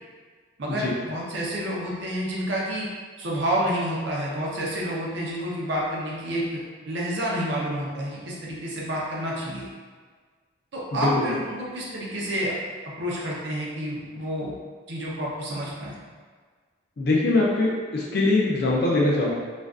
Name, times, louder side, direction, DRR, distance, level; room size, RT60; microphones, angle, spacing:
voice 1, 0.6-2.9 3.2-6.6 6.8-9.7 10.7-12.5 13.0-14.5 14.9-15.9, equal, 60° right, -4 dB, 0.5 m, -29 dB
voice 2, 10.9-11.3 17.0-19.3, left 2 dB, 50° left, -3 dB, 0.4 m, -22 dB
2.4 x 2.2 x 2.3 m, 1.5 s
head